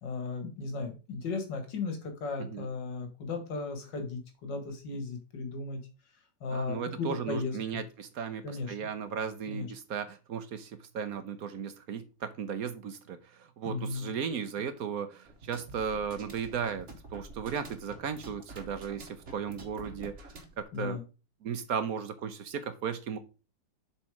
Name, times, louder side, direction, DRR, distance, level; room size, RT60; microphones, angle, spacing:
voice 1, 0.0-5.8 6.4-7.8 8.4-8.8 9.5-9.7 13.6-14.1 20.7-21.0, left 4 dB, 85° left, 6 dB, 2.2 m, -36 dB
voice 2, 6.5-21.0 21.4-23.2, right 7 dB, 60° right, 10 dB, 1.1 m, -36 dB
sound 1, 15.2-20.6, right 2 dB, 45° right, 1.5 m, -48 dB
7.2 x 4.2 x 4.8 m, 0.32 s
omnidirectional pair, 1.9 m